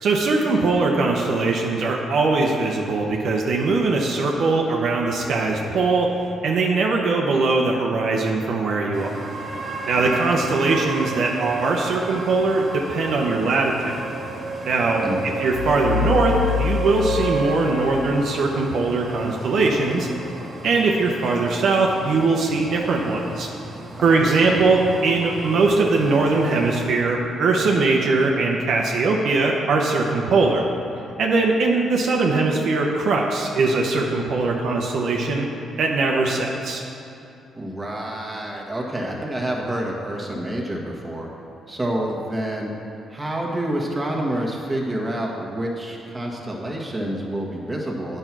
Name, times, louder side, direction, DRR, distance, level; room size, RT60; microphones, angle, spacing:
voice 1, 0.0-6.1 6.4-9.3 9.9-14.0 14.6-20.1 20.6-23.5 24.0-30.7 31.2-35.5 35.8-36.8, right 3 dB, 65° right, 0 dB, 0.9 m, -21 dB
sound 1, 8.9-26.9, right 3 dB, 35° right, 1.4 m, -32 dB
voice 2, 9.9-10.3 15.0-15.4 23.9-24.8 37.6-41.3 41.7-42.7 43.1-48.2, right 1 dB, 15° right, -3 dB, 1.6 m, -28 dB
sound 2, 15.5-18.2, left 8 dB, 55° left, 0.7 m, -26 dB
9.1 x 5.5 x 6.1 m, 2.8 s
cardioid pair, 90°, 0 cm